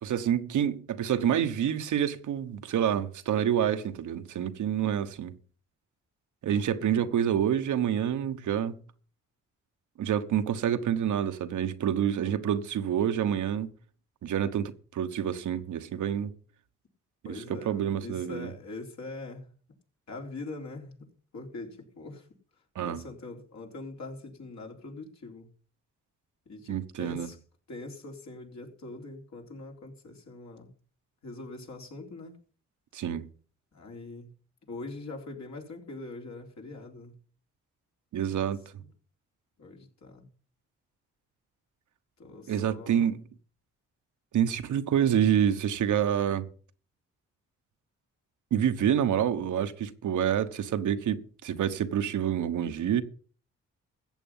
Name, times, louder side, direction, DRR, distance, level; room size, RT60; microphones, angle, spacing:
voice 1, 0.0-5.3 6.4-8.8 10.0-13.7 14.2-16.3 17.3-18.5 22.7-23.0 26.7-27.3 32.9-33.3 38.1-38.6 42.5-43.2 44.3-46.5 48.5-53.0, right 9 dB, 70° right, 1.2 m, -27 dB
voice 2, 17.2-19.5 20.1-21.1 21.3-22.3 22.8-25.5 26.5-27.4 27.7-30.7 31.2-32.3 33.7-34.3 34.7-37.2 38.3-38.5 38.8-38.9 39.6-40.3 42.2-43.1, left 3 dB, 60° left, 3.9 m, -43 dB
14.5 x 8.3 x 5.6 m
supercardioid pair, 55°, 31 cm